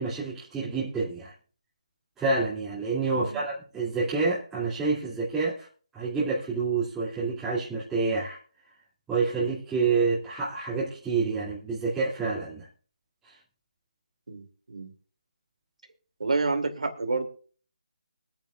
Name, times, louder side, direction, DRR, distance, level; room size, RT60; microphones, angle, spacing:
voice 1, 0.0-1.3 2.2-5.7 5.9-8.4 9.1-12.7 13.3-13.4, right 4 dB, 5° right, 2.6 m, -28 dB
voice 2, 14.3-14.9 16.2-17.3, right 3 dB, 75° right, 2.7 m, -29 dB
24.5 x 8.8 x 2.4 m
figure-of-eight pair, 160°, 4 cm